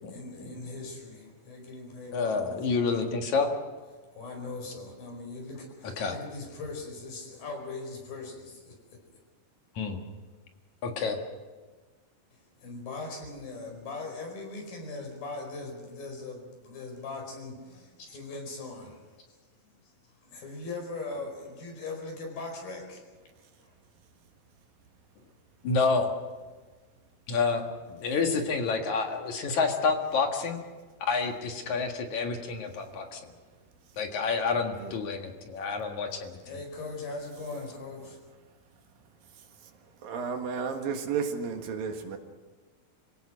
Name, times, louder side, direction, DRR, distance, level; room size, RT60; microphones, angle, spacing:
voice 1, 0.1-3.0 4.1-9.0 12.3-19.2 19.5-19.9 20.2-23.0 23.6-23.8 36.4-38.2, left 3 dB, 75° left, 6.7 m, -40 dB
voice 2, 2.1-3.5 6.0-6.2 9.8-10.0 10.8-11.2 25.6-26.1 27.3-27.6 27.9-30.6 31.1-33.2 34.0-36.4, left 4 dB, 60° left, 3.0 m, -28 dB
voice 3, 40.0-42.2, right 6 dB, 75° right, 3.4 m, -33 dB
27.0 x 17.0 x 6.4 m
omnidirectional pair, 4.2 m